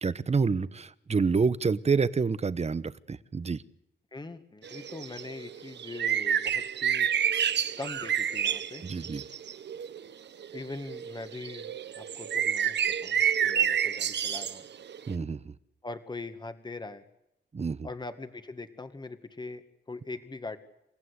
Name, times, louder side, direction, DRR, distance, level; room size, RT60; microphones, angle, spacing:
voice 1, 0.0-3.6 8.8-9.2 15.1-15.5 17.5-17.9, right 5 dB, 35° right, 15 dB, 1.1 m, -28 dB
voice 2, 4.1-7.1 7.8-8.8 10.5-14.6 15.8-17.0 17.8-20.6, left 3 dB, 25° left, 9 dB, 2.0 m, -41 dB
sound 1, 4.6-10.1 10.4-15.1, right 8 dB, 75° right, 1.1 m, -29 dB
28.5 x 15.5 x 8.3 m, 0.84 s
cardioid pair, 95°, 18 cm